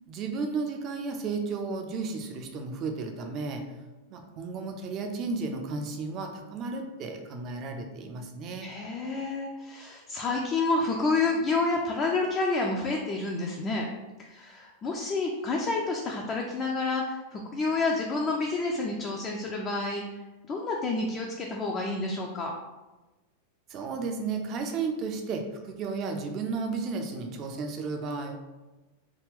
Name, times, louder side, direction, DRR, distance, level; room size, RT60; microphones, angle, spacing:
voice 1, 0.1-3.6 4.1-8.7 23.7-28.4, right 4 dB, 35° right, 4 dB, 0.5 m, -33 dB
voice 2, 8.6-13.9 14.2-20.0 20.4-22.5, left 3 dB, 25° left, 0 dB, 0.4 m, -29 dB
3.4 x 2.3 x 3.5 m, 1.1 s
figure-of-eight pair, 90°, 0 cm